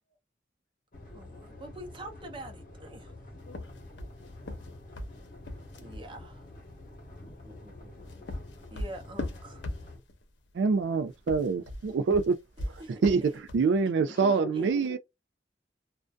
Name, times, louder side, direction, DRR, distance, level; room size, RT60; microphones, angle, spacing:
sound 1, 0.9-10.0, left 2 dB, 50° left, 0.9 m, -48 dB
voice 1, 1.1-3.1 5.8-6.4 8.7-9.6 12.8-13.4 14.5-14.7, right 1 dB, 30° right, 0.7 m, -45 dB
sound 2, 3.5-6.1 7.8-10.2 11.1-13.7, left 1 dB, 80° left, 0.7 m, -39 dB
voice 2, 7.2-8.5 9.3-9.4 14.0-15.0, left 3 dB, 25° left, 0.9 m, -45 dB
voice 3, 10.5-12.4 12.6-15.0, right 4 dB, 75° right, 0.3 m, -26 dB
2.5 x 2.2 x 2.2 m
head